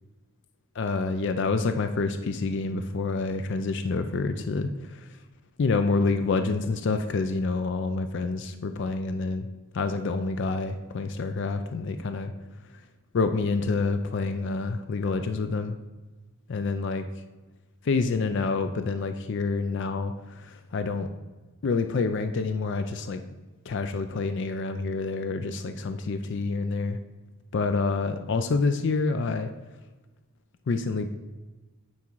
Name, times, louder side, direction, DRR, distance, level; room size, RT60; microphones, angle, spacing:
voice 1, 0.8-5.1 5.6-9.5 9.7-12.3 13.1-15.8 16.5-17.0 17.8-21.1 21.6-23.2 23.7-27.0 27.5-29.5 30.7-31.1, left 3 dB, 55° left, 8 dB, 0.4 m, -27 dB
9.5 x 3.6 x 4.5 m, 1.2 s
head